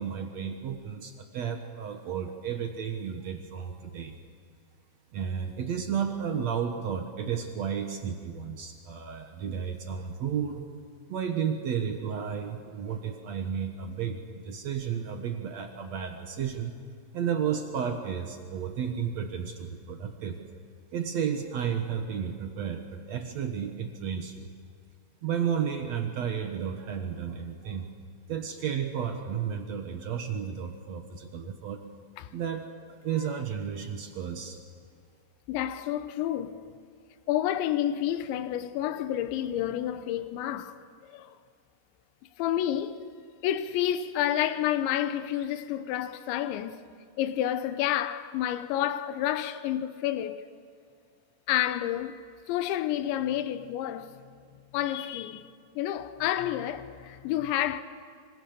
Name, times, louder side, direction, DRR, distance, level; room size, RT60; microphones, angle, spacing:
voice 1, 0.0-4.2 5.1-10.7 11.1-16.8 17.1-20.4 20.9-24.5 25.2-27.9 28.3-31.8 32.3-34.6, right 7 dB, 80° right, 1.5 m, -32 dB
voice 2, 33.1-33.4 35.5-36.6 37.3-41.3 42.4-43.0 43.4-46.8 47.2-50.4 51.5-52.2 52.5-54.1 54.7-55.5 55.8-57.8, left 12 dB, 85° left, 3.3 m, -29 dB
26.0 x 25.5 x 6.8 m
omnidirectional pair, 5.2 m